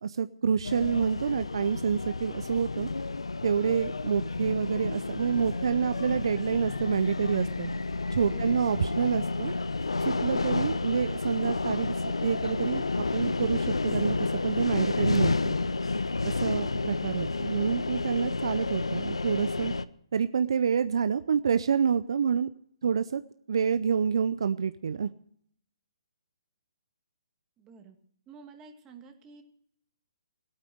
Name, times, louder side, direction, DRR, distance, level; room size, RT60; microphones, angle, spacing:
voice 1, 0.0-2.9 3.4-7.7 8.1-9.5 10.0-15.5 16.2-19.7 20.1-22.5 22.8-23.2 23.5-25.1, right 7 dB, 60° right, 12 dB, 0.5 m, -28 dB
sound 1, 0.6-19.9, left 3 dB, 85° left, 0.6 m, -30 dB
voice 2, 7.2-7.6 8.3-8.7 27.6-28.0 28.3-29.4, right 6 dB, 20° right, 5 dB, 2.0 m, -49 dB
16.5 x 8.9 x 7.7 m, 0.67 s
figure-of-eight pair, 135°, 3 cm